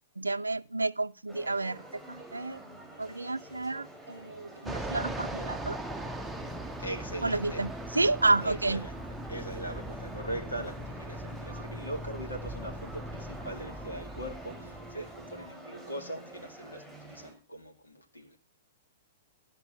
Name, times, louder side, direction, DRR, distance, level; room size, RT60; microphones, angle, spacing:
voice 1, 0.2-2.6 3.0-5.8 7.2-8.9, right 2 dB, 85° right, 0.4 m, -30 dB
sound 1, 1.3-17.3, right 1 dB, 10° left, 5.9 m, -48 dB
Fixed-wing aircraft airplane, 4.7-15.5, right 1 dB, 5° right, 0.8 m, -40 dB
voice 2, 6.8-7.6 8.4-8.9 9.3-18.4, right 1 dB, 85° left, 2.3 m, -40 dB
13.5 x 5.2 x 6.9 m
figure-of-eight pair, 110°, 0 cm